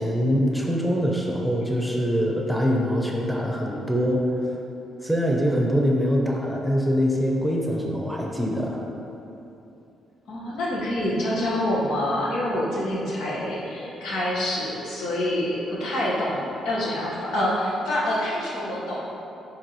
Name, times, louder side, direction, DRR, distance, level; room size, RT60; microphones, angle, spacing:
voice 1, 0.0-4.5 5.0-8.8, equal, ahead, -1 dB, 0.8 m, -24 dB
voice 2, 10.3-19.1, left 1 dB, 85° left, -6 dB, 1.5 m, -26 dB
10.0 x 3.6 x 3.1 m, 2.9 s
cardioid pair, 90°, 0 cm